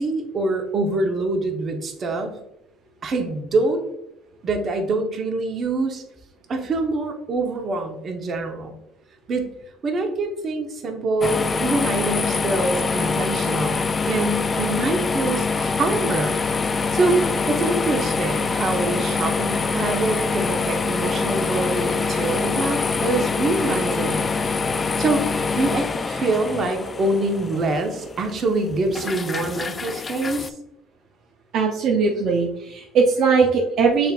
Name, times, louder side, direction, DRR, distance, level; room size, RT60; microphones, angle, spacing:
voice 1, 0.0-2.4 3.0-3.8 4.4-6.0 6.5-8.8 9.3-9.5 9.8-16.4 16.9-24.3 25.0-30.5, right 2 dB, 45° right, 3 dB, 1.0 m, -25 dB
sound 1, 11.2-30.5, left 4 dB, 30° left, 0.3 m, -24 dB
voice 2, 31.5-34.1, right 5 dB, 60° right, -1 dB, 0.6 m, -19 dB
6.4 x 3.4 x 2.4 m, 0.84 s
supercardioid pair, 85°, 0 cm